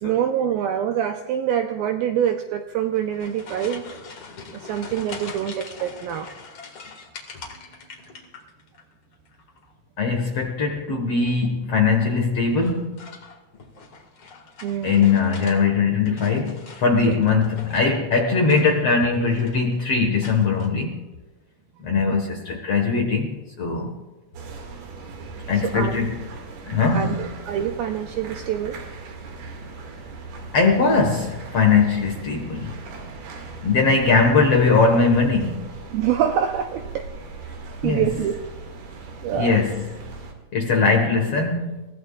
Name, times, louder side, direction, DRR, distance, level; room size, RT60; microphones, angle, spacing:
voice 1, 0.0-3.9 4.5-6.3 14.6-15.1 25.6-26.1 26.9-28.8 35.9-37.6 37.8-38.4 39.2-39.6, right 9 dB, 85° right, 5 dB, 2.1 m, -25 dB
sound 1, 2.8-8.8 9.1-9.7 11.1-11.5 12.5-15.6 15.9-17.9 18.4-19.0 19.3-19.7 20.2-20.7, left 4 dB, 45° left, 1.9 m, -42 dB
voice 2, 10.0-13.1 14.8-21.0 21.8-24.0 25.5-26.1 26.7-27.3 30.5-32.8 33.6-35.7 37.8-38.1 39.3-40.0 40.5-41.9, left 4 dB, 65° left, 2 dB, 1.5 m, -20 dB
sound 2, 24.3-40.3, right 3 dB, 65° right, 3.9 m, -39 dB
29.5 x 16.0 x 2.4 m, 1.1 s
omnidirectional pair, 5.0 m